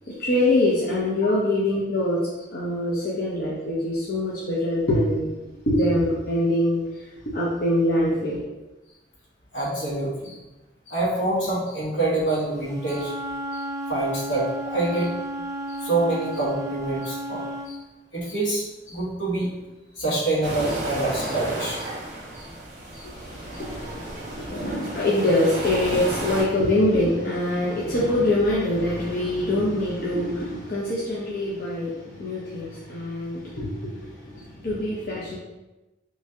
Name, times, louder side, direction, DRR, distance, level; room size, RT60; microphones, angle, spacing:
voice 1, 0.1-2.2 2.5-5.3 5.7-8.4 23.0-35.4, left 1 dB, 50° left, -7 dB, 0.6 m, -24 dB
voice 2, 9.5-10.4 10.9-13.1 13.5-13.6 13.9-15.1 15.7-17.8 18.1-19.5 20.0-21.9 22.3-22.4 22.9-23.0 23.5-23.7, right 2 dB, 75° left, -6 dB, 1.2 m, -26 dB
Wind instrument woodwind instrument, 12.6-17.7, right 1 dB, 20° right, 0.4 m, -33 dB
sound 1, 20.4-26.4, right 1 dB, 45° right, 0.8 m, -33 dB
3.1 x 2.7 x 3.5 m, 1.1 s
head